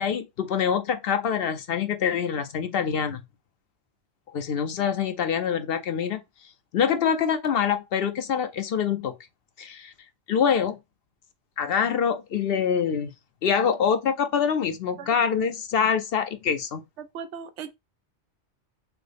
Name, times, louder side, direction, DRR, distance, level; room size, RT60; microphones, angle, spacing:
voice 1, 0.0-3.2 4.3-6.2 6.7-9.1 9.6-9.9 10.3-10.8 11.6-13.1 13.4-16.8, left 7 dB, 65° left, 0.7 m, -25 dB
voice 2, 17.0-17.7, right 7 dB, 80° right, 0.9 m, -38 dB
6.0 x 2.0 x 3.3 m
omnidirectional pair, 1.2 m